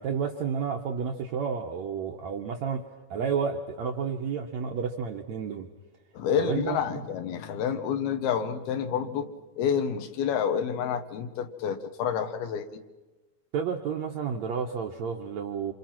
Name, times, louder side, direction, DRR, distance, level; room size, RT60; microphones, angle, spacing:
voice 1, 0.0-2.8 3.1-5.7 6.4-7.0 13.5-15.7, right 6 dB, 70° right, 3 dB, 1.8 m, -31 dB
voice 2, 6.1-12.8, left 7 dB, 80° left, 8 dB, 3.3 m, -29 dB
27.5 x 27.0 x 5.9 m, 1.1 s
omnidirectional pair, 4.5 m